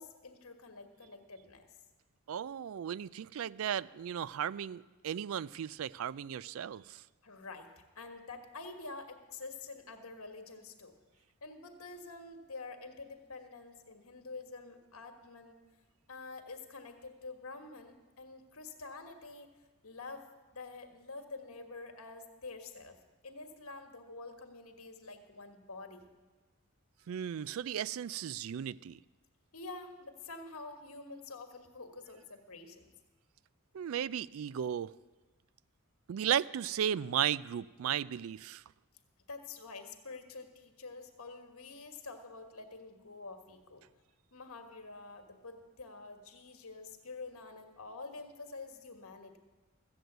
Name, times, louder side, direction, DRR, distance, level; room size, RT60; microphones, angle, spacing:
voice 1, 0.0-1.7 7.2-10.9 11.4-15.6 16.1-19.5 19.8-23.0 23.2-26.1 29.5-32.9 39.3-43.8 44.3-49.4, left 3 dB, 75° left, 1.5 m, -47 dB
voice 2, 2.3-7.0 27.1-29.0 33.7-34.9 36.1-38.6, right 9 dB, 70° right, 0.3 m, -35 dB
14.5 x 7.8 x 7.9 m
head